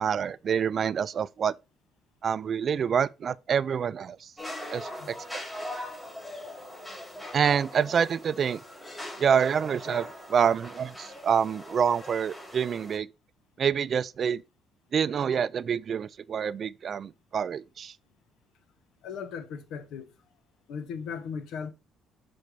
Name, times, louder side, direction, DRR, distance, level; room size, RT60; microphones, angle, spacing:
voice 1, 0.0-1.5 2.2-4.3 4.7-5.4 7.3-8.6 9.2-13.1 13.6-14.4 14.9-17.9, right 7 dB, 50° right, 0.3 m, -27 dB
sound 1, 4.4-13.0, left 1 dB, 10° left, 4.2 m, -41 dB
voice 2, 19.0-20.1 20.7-21.7, left 6 dB, 75° left, 1.1 m, -37 dB
6.6 x 4.3 x 4.7 m
supercardioid pair, 70°, 0 cm